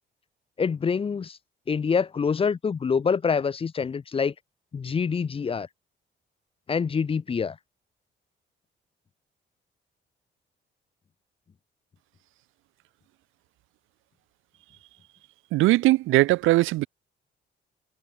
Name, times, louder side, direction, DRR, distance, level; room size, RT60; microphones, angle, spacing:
voice 1, 0.6-1.4 1.7-4.3 4.7-5.7 6.7-7.6, left 6 dB, 30° left, 0.5 m, -26 dB
voice 2, 15.5-16.9, right 18 dB, 85° right, 0.4 m, -20 dB
cardioid pair, 90°, 20 cm